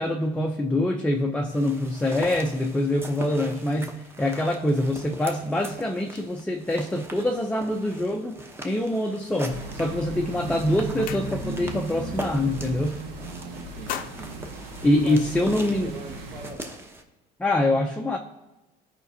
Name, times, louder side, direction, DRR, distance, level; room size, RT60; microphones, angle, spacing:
voice 1, 0.0-8.4 8.6-13.0 14.8-15.9 17.4-18.2, left 1 dB, 5° left, 1 dB, 0.5 m, -25 dB
sound 1, 1.5-17.0, right 1 dB, 15° right, 0.8 m, -42 dB
sound 2, 9.5-16.5, right 2 dB, 75° right, 1.3 m, -36 dB
sound 3, 10.9-11.8 12.1-12.4 12.7-13.3 13.6-15.5, left 10 dB, 55° left, 0.6 m, -39 dB
voice 2, 13.1-14.5 14.8-16.7, right 3 dB, 50° right, -4 dB, 1.3 m, -42 dB
15.0 x 5.1 x 2.7 m, 1.1 s
cardioid pair, 130°, 17 cm